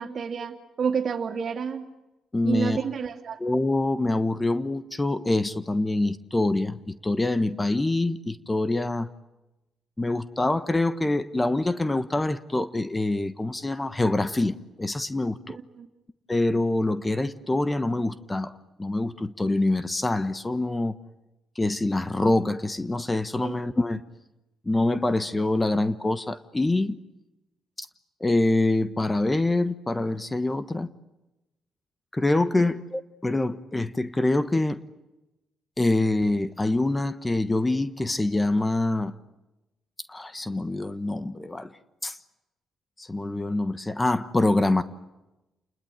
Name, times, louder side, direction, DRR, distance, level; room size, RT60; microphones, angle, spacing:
voice 1, 0.0-1.8 2.4-3.4 15.5-15.9 23.4-23.5 32.6-32.7, right 6 dB, 55° right, 6 dB, 2.7 m, -30 dB
voice 2, 2.3-2.8 3.4-9.1 10.0-15.6 16.3-18.5 18.8-21.0 21.5-24.0 24.6-27.0 27.8-27.9 28.2-30.9 32.1-34.8 35.8-39.1 40.1-41.7 42.0-42.2 43.0-44.8, left 2 dB, 15° left, 13 dB, 1.2 m, -25 dB
29.5 x 20.5 x 9.4 m, 0.98 s
cardioid pair, 90°, 0 cm